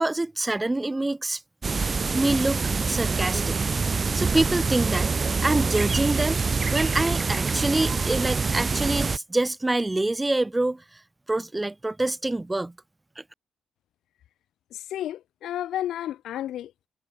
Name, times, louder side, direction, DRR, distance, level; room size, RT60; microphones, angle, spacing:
voice 1, 0.0-1.4 2.1-2.6 2.9-3.6 4.1-5.1 5.4-6.4 6.7-10.8 11.3-12.7, right 2 dB, 20° right, 0.7 m, -26 dB
sound 1, 1.6-9.2, right 4 dB, 40° right, 1.7 m, -25 dB
voice 2, 14.7-16.9, left 12 dB, 75° left, 6.8 m, -32 dB
supercardioid pair, 55°, 0 cm